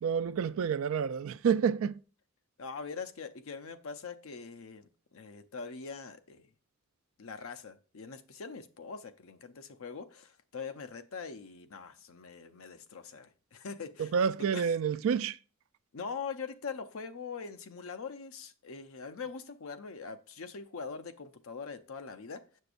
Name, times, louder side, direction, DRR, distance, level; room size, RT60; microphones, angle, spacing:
voice 1, 0.0-2.0 14.0-15.4, right 6 dB, 65° right, 0.3 m, -29 dB
voice 2, 2.6-6.5 7.2-14.1 14.4-14.8 15.9-22.4, left 5 dB, 70° left, 0.6 m, -43 dB
6.8 x 6.5 x 2.5 m
head